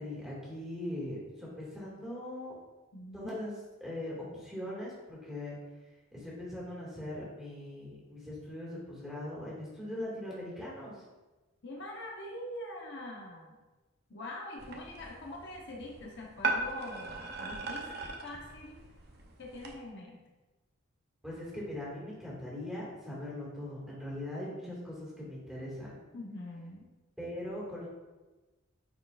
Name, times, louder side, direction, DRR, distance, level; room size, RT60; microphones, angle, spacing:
voice 1, 0.0-2.5 3.1-3.5 3.8-5.6 6.1-11.0 21.2-26.0 27.2-27.9, left 1 dB, ahead, -6 dB, 2.0 m, -40 dB
voice 2, 2.9-3.3 11.6-13.6 14.1-18.8 19.4-20.2 26.1-26.9, left 1 dB, 55° left, -1 dB, 1.0 m, -44 dB
sound 1, 14.6-19.7, right 3 dB, 50° right, 0.8 m, -38 dB
9.2 x 4.4 x 2.5 m, 1.2 s
head